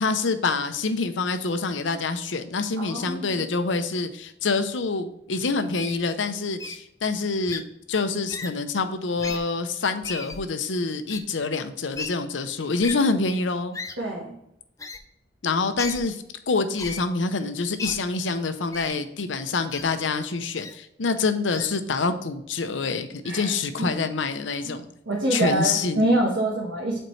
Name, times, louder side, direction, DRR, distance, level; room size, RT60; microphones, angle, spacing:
voice 1, 0.0-7.6 7.9-13.8 15.4-24.9 25.3-26.1, left 4 dB, 80° left, 9 dB, 0.7 m, -26 dB
voice 2, 2.8-3.4 14.0-14.3 23.2-23.5 23.8-23.9 25.1-27.0, right 1 dB, 90° right, -3 dB, 1.4 m, -25 dB
Wild animals, 5.8-6.0 6.6-6.8 7.5-7.6 8.3-8.5 9.2-9.4 10.0-10.4 11.1-11.2 11.9-12.1 12.8-12.9 13.7-13.9 14.8-15.0 15.8-16.0 16.8-17.0 17.8-17.9 18.7-18.9 19.7-19.8 20.6-20.7 21.5-21.7, left 4 dB, 15° left, 0.4 m, -35 dB
7.8 x 4.4 x 3.2 m, 0.79 s
head